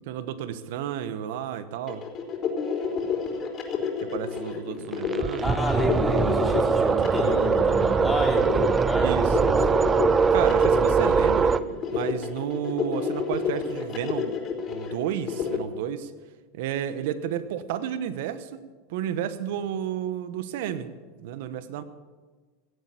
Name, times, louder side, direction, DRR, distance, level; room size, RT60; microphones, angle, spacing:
voice 1, 0.1-2.0 4.0-5.5 9.0-9.6 10.3-11.6 11.9-14.3 14.7-16.1 16.5-18.6 18.9-20.9 21.2-21.8, right 10 dB, 70° right, 13 dB, 1.0 m, -32 dB
sound 1, 1.9-15.6, left 6 dB, 40° left, 3.8 m, -30 dB
sound 2, 4.9-11.6, right 5 dB, 25° right, 0.6 m, -22 dB
voice 2, 5.4-9.3, equal, 5° left, -2 dB, 3.7 m, -30 dB
17.0 x 8.1 x 8.5 m, 1.4 s
hypercardioid pair, 105°, 0 cm